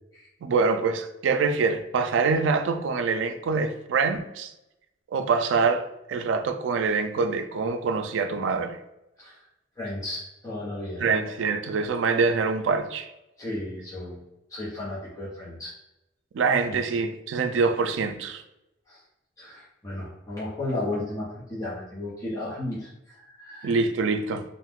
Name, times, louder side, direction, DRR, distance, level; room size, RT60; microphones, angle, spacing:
voice 1, 0.4-4.5 5.1-8.8 11.0-13.1 16.3-18.4 23.6-24.4, right 4 dB, 80° right, 0.3 m, -25 dB
voice 2, 9.8-11.1 13.4-14.2 14.5-15.7 16.7-16.8 18.9-19.0 19.4-23.8, left 1 dB, 20° left, 0.7 m, -34 dB
2.5 x 2.3 x 3.5 m
head